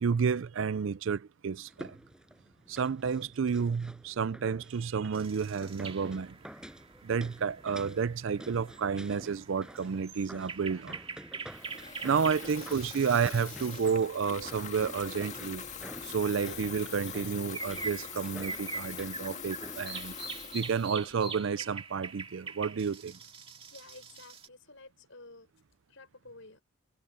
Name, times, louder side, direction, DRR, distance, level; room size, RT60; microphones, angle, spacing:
voice 1, 0.0-2.0 2.7-6.4 7.0-11.0 12.0-15.6 16.0-20.1 20.5-23.2, right 6 dB, 60° right, 0.4 m, -31 dB
sound 1, 1.7-20.5 20.8-20.9, equal, 5° right, 5.8 m, -50 dB
sound 2, 5.1-14.8 15.3-15.4 15.7-24.5, right 4 dB, 25° right, 2.2 m, -44 dB
Water tap faucet / Fill (with liquid), 11.5-21.8, left 7 dB, 35° left, 1.9 m, -43 dB
voice 2, 23.7-25.5 25.9-26.6, left 2 dB, 60° left, 6.9 m, -52 dB
head